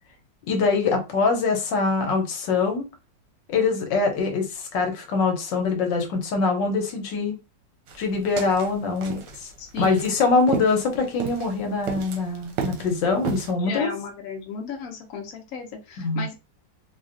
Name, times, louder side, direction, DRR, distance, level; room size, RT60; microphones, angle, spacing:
voice 1, 0.5-2.8 3.5-7.4 8.0-9.5 9.8-13.9 16.0-16.3, left 4 dB, 80° left, 1.4 m, -23 dB
sound 1, 7.9-13.5, right 6 dB, 75° right, 1.3 m, -34 dB
voice 2, 9.6-10.1 13.6-16.3, left 5 dB, 60° left, 1.0 m, -35 dB
3.2 x 2.4 x 2.5 m
omnidirectional pair, 2.0 m